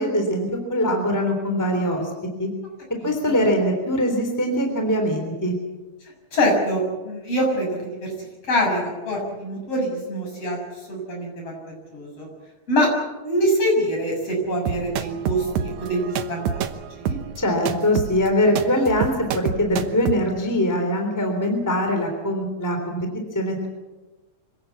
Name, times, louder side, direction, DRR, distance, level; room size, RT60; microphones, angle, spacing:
voice 1, 0.0-2.1 2.4-2.5 3.0-5.5 17.4-23.1 23.3-23.7, equal, 5° left, 4 dB, 3.4 m, -22 dB
voice 2, 6.3-8.1 8.4-10.6 10.9-12.3 12.7-12.9 13.2-17.2, equal, 50° left, 0 dB, 7.8 m, -24 dB
sound 1, 14.7-20.2, right 8 dB, 75° right, 2.5 m, -28 dB
25.5 x 17.0 x 8.4 m, 1.1 s
omnidirectional pair, 3.4 m